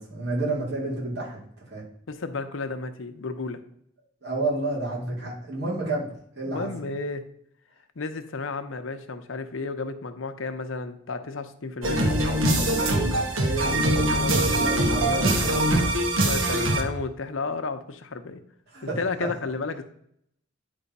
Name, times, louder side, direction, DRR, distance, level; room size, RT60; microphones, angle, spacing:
voice 1, 0.0-1.4 1.7-1.8 4.2-6.7 13.1-13.8 14.3-15.6 18.7-19.3, right 2 dB, 55° right, -4 dB, 2.4 m, -30 dB
voice 2, 2.1-3.6 6.4-7.2 8.0-12.2 14.1-14.5 16.2-18.4 19.0-19.8, left 3 dB, 75° left, 9 dB, 0.7 m, -32 dB
sound 1, 11.8-16.8, right 1 dB, 85° right, 1.3 m, -23 dB
9.2 x 3.4 x 5.3 m, 0.69 s
head